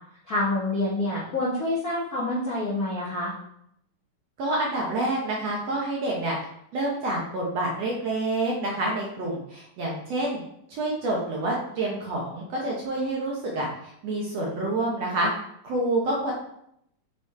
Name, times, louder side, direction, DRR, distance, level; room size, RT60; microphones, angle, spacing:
voice 1, 0.3-3.3, left 2 dB, 65° left, -8 dB, 0.9 m, -27 dB
voice 2, 4.4-6.4 6.7-10.4 10.7-15.3 15.6-16.3, right 2 dB, 65° right, -3 dB, 1.7 m, -28 dB
6.4 x 3.8 x 4.2 m, 0.73 s
omnidirectional pair, 4.0 m